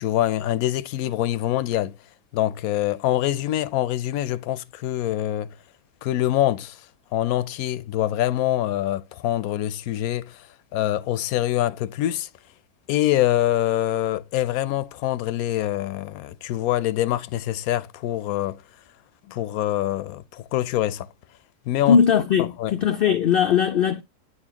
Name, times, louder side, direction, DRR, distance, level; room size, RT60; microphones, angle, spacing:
voice 1, 0.0-1.9 2.3-5.5 6.0-6.9 7.1-12.3 12.9-18.6 19.3-21.1 21.7-22.0 22.4-22.7, left 13 dB, 80° left, 1.0 m, -25 dB
voice 2, 21.9-24.0, left 7 dB, 65° left, 0.5 m, -19 dB
9.4 x 4.3 x 2.8 m
omnidirectional pair, 1.5 m